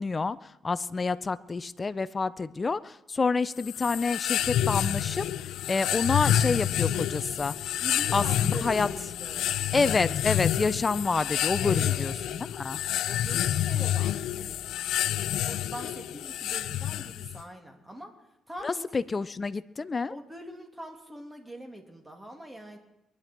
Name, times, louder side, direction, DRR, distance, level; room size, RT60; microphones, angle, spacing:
voice 1, 0.0-5.3 5.7-7.5 8.1-8.9 9.7-12.8 18.6-20.2, left 4 dB, 30° left, 15 dB, 0.6 m, -28 dB
sound 1, 3.6-17.4, left 11 dB, 80° left, 0.5 m, -28 dB
voice 2, 7.8-9.5 11.6-12.0 13.0-14.6 15.1-18.1 18.5-19.0 20.1-22.8, right 1 dB, 10° right, 3 dB, 2.7 m, -43 dB
23.0 x 10.5 x 4.5 m, 0.89 s
cardioid pair, 90°, 0 cm